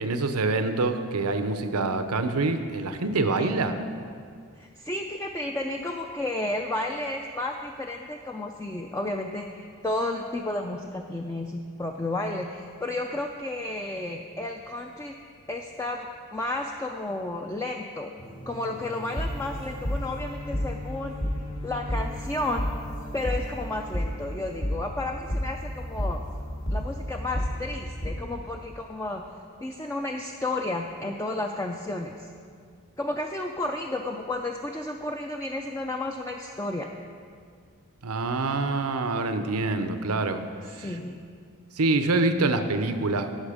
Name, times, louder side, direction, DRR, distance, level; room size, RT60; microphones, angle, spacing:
voice 1, 0.0-3.7 38.0-40.4 40.7-40.9 41.8-43.3, right 3 dB, 90° right, 8 dB, 0.8 m, -26 dB
voice 2, 4.5-15.1 15.5-18.1 18.5-21.2 21.6-22.7 23.1-26.2 26.7-29.2 29.6-32.3 33.0-36.9 40.8-41.2, left 2 dB, 15° left, 2 dB, 0.4 m, -32 dB
sound 1, 18.2-28.1, equal, 55° left, 2.4 m, -32 dB
18.0 x 6.1 x 5.0 m, 2.2 s
head